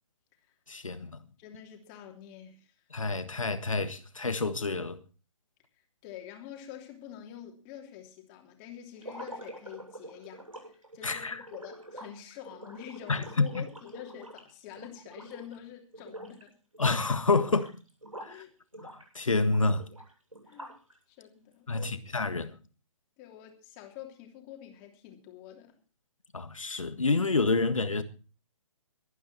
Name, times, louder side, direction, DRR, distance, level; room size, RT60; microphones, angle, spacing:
voice 1, 0.7-1.2 2.9-5.0 11.0-11.4 13.1-13.6 16.8-17.8 18.2-18.4 18.8-18.9 19.1-19.9 21.7-22.6 26.3-28.0, left 3 dB, 75° left, 1.6 m, -28 dB
voice 2, 1.4-2.7 6.0-16.6 18.2-18.5 20.5-20.8 21.1-22.1 23.2-25.7, left 11 dB, 25° left, 3.0 m, -47 dB
sound 1, 9.0-15.6 15.9-16.4 16.7-18.4 18.7-20.9, right 1 dB, 80° right, 7.6 m, -46 dB
22.5 x 9.3 x 4.3 m
figure-of-eight pair, 130°, 17 cm